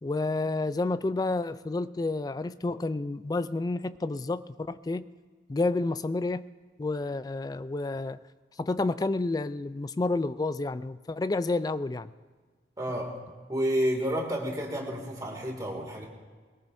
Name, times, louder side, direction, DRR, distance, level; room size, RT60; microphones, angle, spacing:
voice 1, 0.0-5.0 5.5-6.5 6.8-8.2 8.6-12.1, left 2 dB, 20° left, 14 dB, 0.3 m, -30 dB
voice 2, 12.8-13.2 13.5-16.0, equal, 20° right, 0 dB, 2.4 m, -30 dB
21.5 x 18.0 x 2.7 m, 1.5 s
head